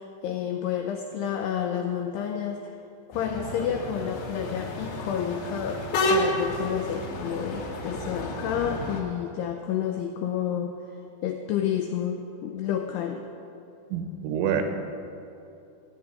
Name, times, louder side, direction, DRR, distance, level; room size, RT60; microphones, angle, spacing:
voice 1, 0.0-2.8 3.1-10.8 11.2-13.2, left 9 dB, 90° left, 5 dB, 2.3 m, -30 dB
sound 1, 3.1-9.0, left 1 dB, 75° left, 3.8 m, -30 dB
voice 2, 13.9-14.6, right 8 dB, 75° right, 6 dB, 3.4 m, -27 dB
16.0 x 5.9 x 9.8 m, 2.7 s
omnidirectional pair, 5.5 m